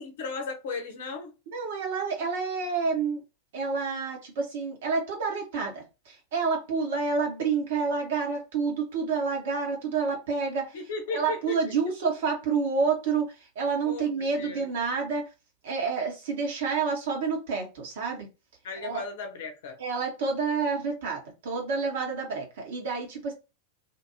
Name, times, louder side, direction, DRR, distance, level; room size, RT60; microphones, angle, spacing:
voice 1, 0.0-1.3 10.7-11.6 13.8-14.7 18.6-19.8, left 4 dB, 55° left, 0.8 m, -36 dB
voice 2, 1.5-3.2 3.5-10.7 11.1-15.3 15.6-18.3 18.8-19.0 19.8-23.3, right 5 dB, 55° right, 1.2 m, -29 dB
2.7 x 2.6 x 2.7 m
figure-of-eight pair, 90°, 0 cm